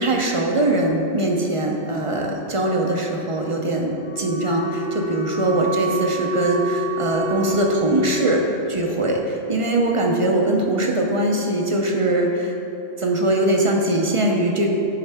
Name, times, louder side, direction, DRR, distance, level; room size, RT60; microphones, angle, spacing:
voice 1, 0.0-8.4 8.7-12.5 13.0-14.7, right 1 dB, 40° right, 1 dB, 0.5 m, -21 dB
Wind instrument woodwind instrument, 3.9-8.3, left 1 dB, 80° left, 1.7 m, -29 dB
8.4 x 5.3 x 3.4 m, 2.9 s
omnidirectional pair, 1.1 m